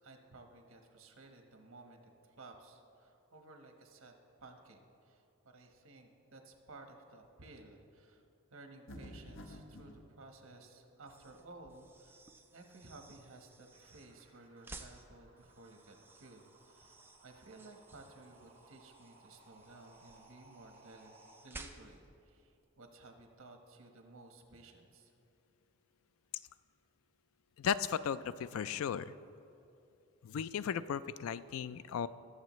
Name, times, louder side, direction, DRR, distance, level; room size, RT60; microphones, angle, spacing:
voice 1, 0.0-8.2 8.5-12.2 12.5-21.2 21.4-25.1, right 2 dB, 75° right, 4 dB, 1.2 m, -56 dB
sound 1, 8.9-10.0, left 1 dB, 65° left, 0.9 m, -49 dB
sound 2, 11.0-22.1, right 3 dB, 10° right, 0.4 m, -56 dB
sound 3, 13.7-21.4, right 2 dB, 45° right, 2.8 m, -63 dB
voice 2, 27.6-29.1 30.2-32.1, left 7 dB, 80° left, 15 dB, 0.3 m, -36 dB
19.5 x 7.4 x 3.1 m, 2.7 s
head